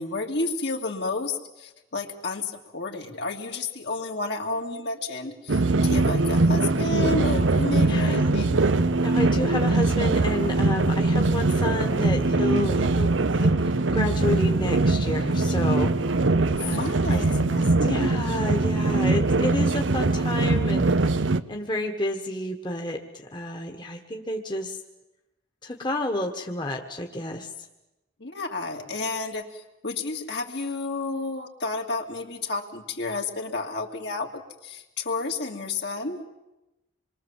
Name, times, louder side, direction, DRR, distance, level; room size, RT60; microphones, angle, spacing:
voice 1, 0.0-8.6 16.5-17.7 28.2-36.2, left 3 dB, 60° left, 2 dB, 2.6 m, -31 dB
sound 1, 5.5-21.4, right 2 dB, 85° right, 0.9 m, -22 dB
voice 2, 7.9-8.3 9.0-16.1 16.6-17.2 17.8-23.0 23.3-24.8 25.6-27.5, left 1 dB, 25° left, 3 dB, 1.5 m, -30 dB
27.0 x 22.5 x 7.5 m, 0.98 s
head